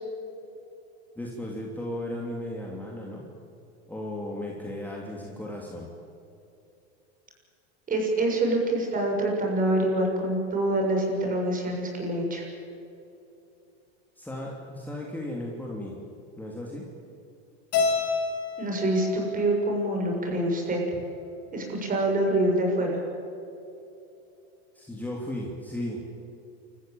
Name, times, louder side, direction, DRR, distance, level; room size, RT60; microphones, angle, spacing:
voice 1, 1.1-3.3 3.9-5.9 14.2-16.0 16.4-16.9 24.7-26.0, left 1 dB, 5° left, -2 dB, 3.2 m, -35 dB
voice 2, 7.9-12.4 18.6-20.8 21.5-23.0, right 1 dB, 25° right, 1 dB, 7.2 m, -26 dB
Keyboard (musical), 17.7-20.1, left 4 dB, 50° left, 7.0 m, -29 dB
29.0 x 15.0 x 8.9 m, 2.8 s
supercardioid pair, 125°, 32 cm